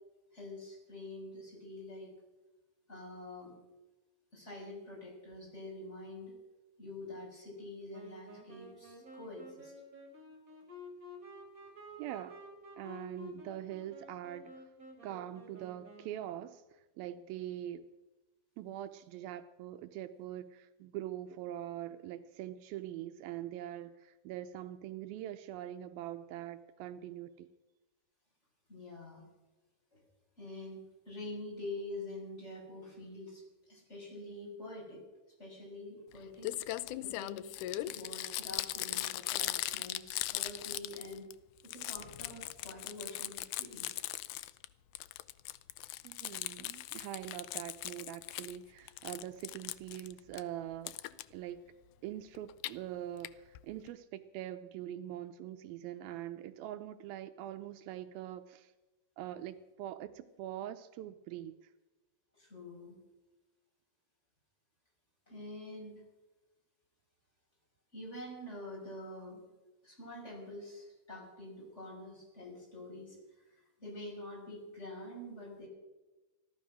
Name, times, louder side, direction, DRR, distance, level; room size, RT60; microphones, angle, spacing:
voice 1, 0.3-2.1 2.9-3.5 4.3-6.4 6.8-9.7 28.7-29.2 29.9-30.0 30.4-35.0 35.4-37.5 37.8-41.3 41.6-43.9 62.3-63.0 65.3-66.0 67.9-69.4 69.8-75.7, left 1 dB, 15° left, -3 dB, 6.3 m, -46 dB
Wind instrument woodwind instrument, 7.9-16.3, left 1 dB, 25° right, 3.3 m, -52 dB
voice 2, 12.0-12.4 12.8-14.6 15.0-17.9 18.6-27.5 46.0-51.0 51.3-51.6 52.0-58.7 59.2-61.7, right 12 dB, 80° right, 11 dB, 2.5 m, -43 dB
Crumpling crinkling, 36.1-36.2 36.4-41.3 41.6-44.7 45.0-48.6 48.9-50.4 50.9-51.2 52.4-52.7 53.2-53.3 53.6-53.7 53.9-54.0, left 16 dB, 90° left, 1.7 m, -39 dB
16.5 x 12.5 x 6.3 m, 1.1 s
omnidirectional pair, 4.3 m